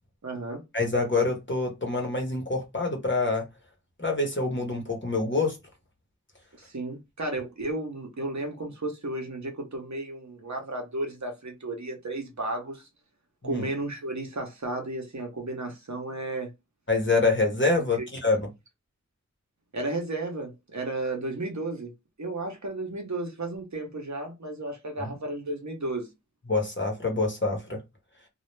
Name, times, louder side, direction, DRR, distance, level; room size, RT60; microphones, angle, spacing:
voice 1, 0.2-0.6 6.6-12.9 13.4-16.5 18.0-18.1 19.7-21.9 22.2-26.1, right 2 dB, 70° right, 0.8 m, -33 dB
voice 2, 0.7-3.5 4.0-5.6 13.4-13.6 16.9-18.5 25.0-25.2 26.5-27.8, left 3 dB, 40° left, 0.9 m, -26 dB
2.3 x 2.0 x 3.2 m
wide cardioid pair, 40°, 30 cm